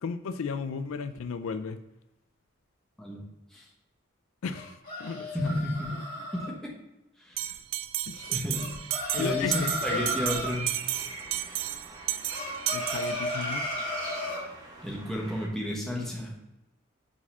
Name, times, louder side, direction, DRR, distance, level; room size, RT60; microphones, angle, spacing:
voice 1, 0.0-1.8 4.4-4.7 5.0-5.5 8.1-8.4 9.1-10.1 12.7-13.6, left 5 dB, 80° left, 10 dB, 0.4 m, -34 dB
sound 1, 4.5-6.5 8.5-10.5 12.3-14.4, left 1 dB, 40° left, 2.2 m, -34 dB
voice 2, 5.3-5.9 6.3-6.7 7.3-7.5 8.3-10.7 14.8-16.3, left 1 dB, ahead, -3 dB, 1.2 m, -32 dB
Bell, 7.4-13.6, right 13 dB, 65° right, 0.3 m, -33 dB
sound 2, 9.3-15.5, right 1 dB, 20° right, 1.4 m, -44 dB
4.8 x 4.2 x 5.4 m, 0.93 s
head